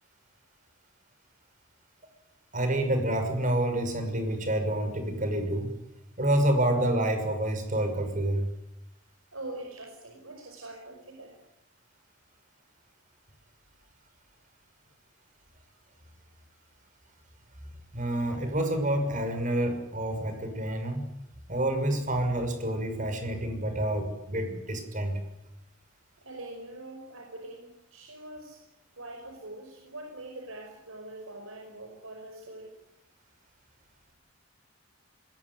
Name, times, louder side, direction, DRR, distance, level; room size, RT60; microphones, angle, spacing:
voice 1, 2.5-5.7 6.2-8.5 17.9-21.2 21.5-25.2, right 1 dB, 35° right, 7 dB, 6.0 m, -28 dB
voice 2, 9.3-11.4 26.2-28.6 28.9-32.8, right 2 dB, 75° right, 2 dB, 5.6 m, -43 dB
25.5 x 22.0 x 9.7 m, 0.87 s
head